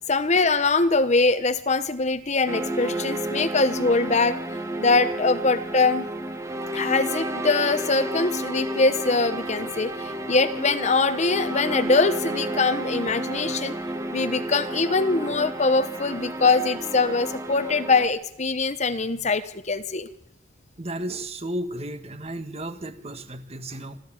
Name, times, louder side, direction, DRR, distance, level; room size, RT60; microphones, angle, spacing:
voice 1, 0.1-4.4 4.8-6.1 6.7-13.7 14.1-20.1, left 3 dB, 35° left, 12 dB, 1.0 m, -23 dB
sound 1, 2.5-18.1, right 1 dB, 15° right, 1.5 m, -31 dB
voice 2, 20.8-24.0, right 1 dB, 35° right, 9 dB, 1.6 m, -34 dB
26.0 x 13.0 x 8.9 m, 0.75 s
head